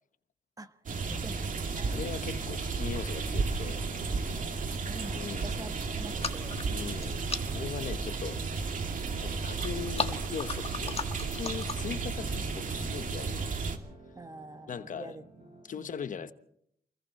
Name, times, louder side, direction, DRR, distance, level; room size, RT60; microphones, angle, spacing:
sound 1, 0.9-13.8, right 4 dB, 60° right, 2.4 m, -33 dB
voice 1, 1.0-1.9 4.6-6.6 14.1-15.2 15.8-16.3, right 2 dB, 25° right, 1.4 m, -46 dB
voice 2, 1.9-3.9 5.1-5.5 6.7-7.2 7.5-8.4 9.2-13.5 14.7-15.2 15.6-16.3, left 7 dB, 60° left, 1.1 m, -40 dB
sound 2, 3.6-15.6, right 3 dB, 40° right, 7.7 m, -53 dB
sound 3, 6.0-12.0, left 5 dB, 40° left, 1.6 m, -39 dB
28.5 x 21.0 x 4.3 m
cardioid pair, 85°, 16 cm